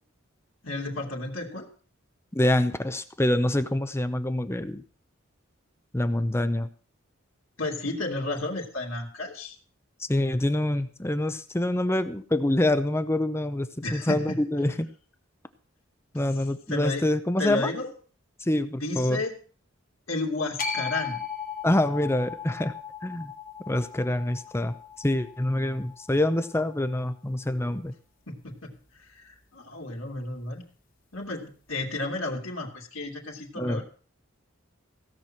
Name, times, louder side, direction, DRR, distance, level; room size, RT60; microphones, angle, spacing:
voice 1, 0.6-1.7 7.6-9.6 13.8-14.4 16.7-17.1 17.4-17.9 18.7-19.4 20.1-21.3 28.3-30.6 31.1-33.8, left 2 dB, 80° left, 0 dB, 2.7 m, -32 dB
voice 2, 2.3-4.8 5.9-6.7 10.0-14.9 16.1-17.7 18.4-19.2 21.6-22.7 23.0-23.3 23.7-27.9 33.6-33.8, left 1 dB, 15° left, 11 dB, 0.7 m, -26 dB
sound 1, 20.6-26.8, left 6 dB, 45° left, 2.3 m, -37 dB
16.5 x 6.2 x 7.5 m, 0.41 s
head